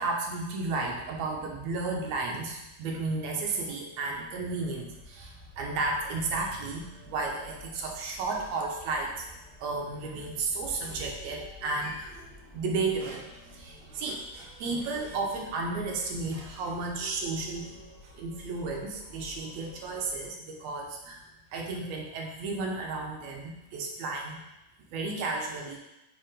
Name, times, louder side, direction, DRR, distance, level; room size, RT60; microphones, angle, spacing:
voice 1, 0.0-9.3 9.6-12.3 12.5-21.2 21.5-24.4 24.9-25.8, right 3 dB, 70° right, 0 dB, 1.7 m, -33 dB
sound 1, 4.1-20.3, left 1 dB, 45° left, 1.0 m, -52 dB
7.3 x 2.8 x 5.0 m, 0.92 s
omnidirectional pair, 3.7 m